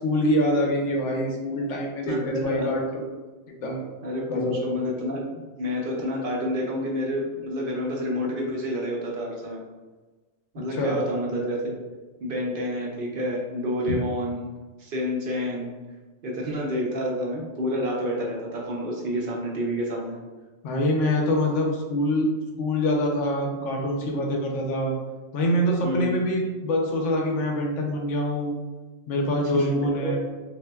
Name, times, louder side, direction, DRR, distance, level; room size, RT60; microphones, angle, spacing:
voice 1, 0.0-3.0 3.5-3.9 4.3-4.6 10.7-11.0 13.9-14.0 20.6-22.3 22.6-24.9 25.3-28.5 29.1-30.2, left 1 dB, 85° left, 0 dB, 1.0 m, -25 dB
voice 2, 2.1-2.7 4.0-9.6 10.5-11.8 12.2-14.5 14.8-15.7 16.2-20.2 25.8-26.2 29.5-30.1, left 1 dB, 55° right, -2 dB, 0.7 m, -29 dB
3.8 x 2.6 x 2.2 m, 1.3 s
omnidirectional pair, 1.2 m